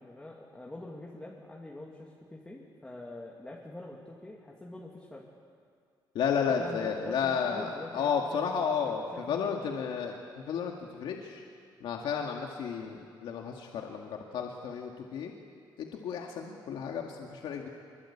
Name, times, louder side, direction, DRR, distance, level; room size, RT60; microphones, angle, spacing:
voice 1, 0.0-5.3 6.3-8.1 8.5-9.4, left 1 dB, 10° left, -3 dB, 2.4 m, -45 dB
voice 2, 6.1-11.4 11.8-15.3 15.8-17.7, left 6 dB, 80° left, 1 dB, 2.1 m, -32 dB
26.0 x 22.5 x 8.7 m, 2.2 s
cardioid pair, 155°, 8 cm